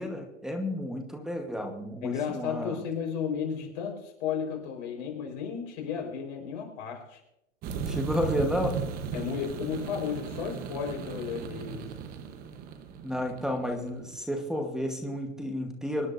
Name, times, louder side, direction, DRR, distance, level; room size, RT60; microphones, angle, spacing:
voice 1, 0.0-2.8 7.8-8.8 13.0-16.1, equal, ahead, 2 dB, 1.1 m, -31 dB
voice 2, 2.0-7.2 9.1-11.9, left 7 dB, 35° left, 2 dB, 4.3 m, -33 dB
sound 1, 7.6-14.2, right 6 dB, 20° right, 1.0 m, -36 dB
25.0 x 10.0 x 2.6 m, 0.85 s
hypercardioid pair, 135°, 39 cm